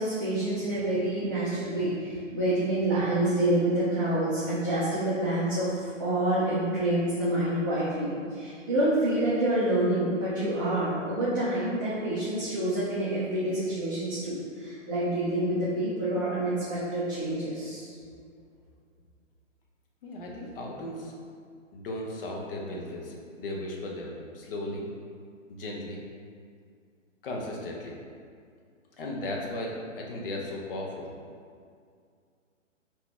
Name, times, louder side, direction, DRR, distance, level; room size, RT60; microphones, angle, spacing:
voice 1, 0.0-17.8, right 1 dB, 15° right, -10 dB, 0.4 m, -27 dB
voice 2, 20.0-21.1 21.7-24.9 25.5-26.0 27.2-27.9 29.0-31.1, left 1 dB, 45° left, -2 dB, 0.9 m, -36 dB
3.8 x 2.9 x 4.3 m, 2.2 s
figure-of-eight pair, 130°, 38 cm